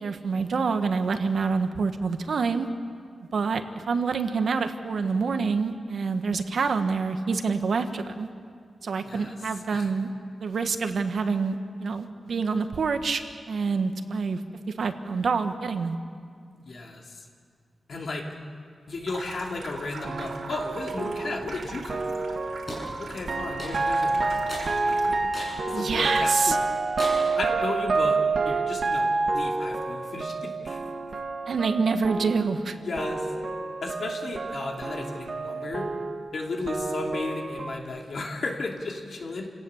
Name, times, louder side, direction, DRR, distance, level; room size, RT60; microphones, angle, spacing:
voice 1, 0.0-2.7 3.3-8.3 8.8-10.1 10.4-13.2 13.5-14.4 14.8-16.0 25.7-26.6 31.5-32.8, right 4 dB, 65° right, 8 dB, 1.3 m, -27 dB
voice 2, 9.0-9.3 9.7-9.9 16.5-17.3 17.9-18.3 18.9-22.3 23.0-24.4 24.9-26.7 27.3-30.8 32.8-33.3 33.8-35.9 36.3-39.5, left 3 dB, 60° left, 1 dB, 2.8 m, -34 dB
Water tap faucet / Sink (filling or washing), 18.9-25.4, right 4 dB, 85° right, 3.3 m, -42 dB
sound 1, 20.0-32.7 33.0-37.8, right 3 dB, 50° right, 1.8 m, -28 dB
sound 2, 22.7-22.9 23.6-24.0 24.5-24.7 25.3-25.6 26.1-26.2 27.0-27.4, left 1 dB, 25° left, 7.6 m, -36 dB
29.5 x 17.5 x 7.2 m, 2.2 s
wide cardioid pair, 160°, 0 cm